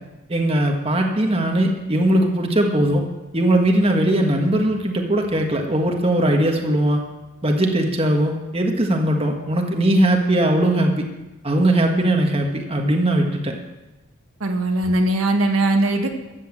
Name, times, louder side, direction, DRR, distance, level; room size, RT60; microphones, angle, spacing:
voice 1, 0.3-3.0 3.3-7.0 7.4-11.1 11.4-13.6, right 1 dB, 25° right, 2 dB, 1.5 m, -19 dB
voice 2, 14.4-16.1, right 2 dB, 75° right, 3 dB, 1.5 m, -20 dB
14.0 x 8.7 x 7.4 m, 1.1 s
head